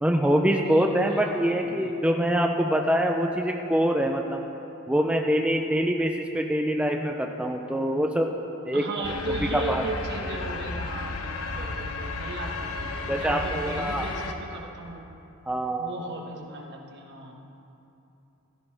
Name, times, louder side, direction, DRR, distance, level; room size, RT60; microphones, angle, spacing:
voice 1, 0.0-4.4 4.9-8.3 8.6-8.8 9.5-9.8 13.1-14.1 15.5-15.9, equal, 5° right, 2 dB, 0.5 m, -24 dB
voice 2, 0.6-1.9 8.7-15.1 15.8-17.4, right 2 dB, 55° right, 1 dB, 1.5 m, -37 dB
sound 1, 9.0-14.3, left 3 dB, 90° left, 0.9 m, -33 dB
16.0 x 14.5 x 3.5 m, 2.9 s
head